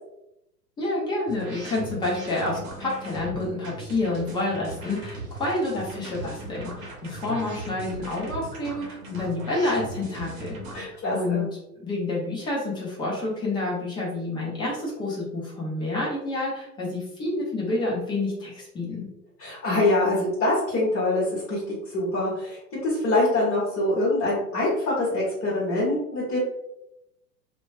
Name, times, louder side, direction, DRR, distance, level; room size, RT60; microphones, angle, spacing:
voice 1, 0.8-11.5 11.8-19.1, left 2 dB, 10° left, -5 dB, 0.5 m, -29 dB
sound 1, 1.3-10.8, right 1 dB, 55° right, 0.9 m, -38 dB
voice 2, 10.7-11.5 19.4-26.4, left 2 dB, 30° left, -8 dB, 1.1 m, -24 dB
2.9 x 2.2 x 2.6 m, 0.87 s
figure-of-eight pair, 100°, 48 cm